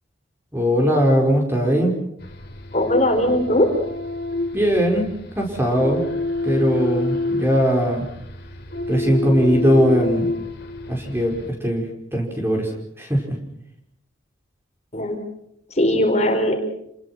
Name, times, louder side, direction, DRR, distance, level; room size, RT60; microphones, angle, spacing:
voice 1, 0.5-1.9 4.5-5.1 5.4-6.0 6.4-8.1 8.9-10.3 10.9-11.3 11.6-11.8 12.1-12.7 13.0-13.4, equal, 10° right, 1 dB, 5.3 m, -19 dB
sound 1, 2.2-11.5, left 2 dB, 50° left, 3.5 m, -28 dB
voice 2, 2.7-3.7 14.9-15.2 15.7-16.6, left 1 dB, 35° left, 3 dB, 4.3 m, -19 dB
29.5 x 20.5 x 6.2 m, 0.76 s
head